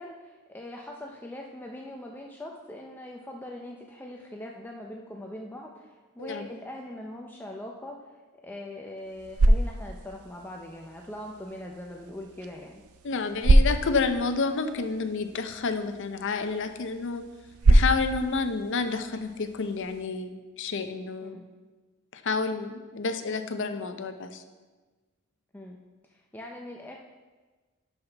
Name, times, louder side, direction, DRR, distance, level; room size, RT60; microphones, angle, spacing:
voice 1, 0.0-7.9 8.4-12.8 21.2-21.4 25.5-25.8 26.1-27.0, left 1 dB, 10° left, 0 dB, 0.5 m, -41 dB
sound 1, 9.0-20.1, right 1 dB, 85° right, 0.6 m, -27 dB
voice 2, 13.0-17.2 17.7-21.4 22.1-24.4, left 4 dB, 60° left, 8 dB, 0.6 m, -29 dB
11.5 x 5.6 x 3.4 m, 1.3 s
head